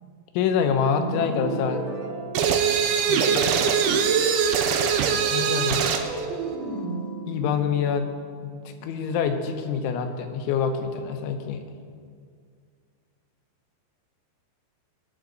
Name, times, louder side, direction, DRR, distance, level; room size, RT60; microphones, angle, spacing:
voice 1, 0.3-1.8 3.1-3.5 5.3-5.9 7.3-8.1 8.4-8.5 8.8-11.6, left 6 dB, 80° left, 6 dB, 3.2 m, -26 dB
sound 1, 1.0-3.4 5.8-9.1, right 3 dB, 65° right, 2.8 m, -35 dB
sound 2, 2.4-6.1, right 7 dB, 80° right, 3.0 m, -22 dB
21.0 x 8.6 x 3.9 m, 2.1 s
omnidirectional pair, 5.6 m